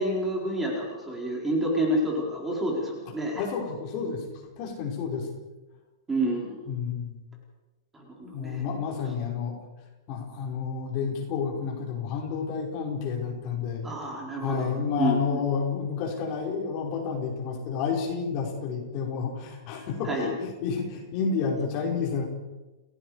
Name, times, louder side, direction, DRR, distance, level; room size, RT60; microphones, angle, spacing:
voice 1, 0.0-3.4 6.1-6.6 7.9-8.6 13.8-14.7 15.0-15.4 20.0-20.3, right 1 dB, 10° right, -2 dB, 4.6 m, -29 dB
voice 2, 3.4-4.3 4.6-5.3 6.7-7.2 8.2-9.6 10.1-13.9 14.4-22.2, left 5 dB, 30° left, 0 dB, 5.4 m, -30 dB
30.0 x 19.0 x 5.1 m, 1.1 s
supercardioid pair, 170°, 2 cm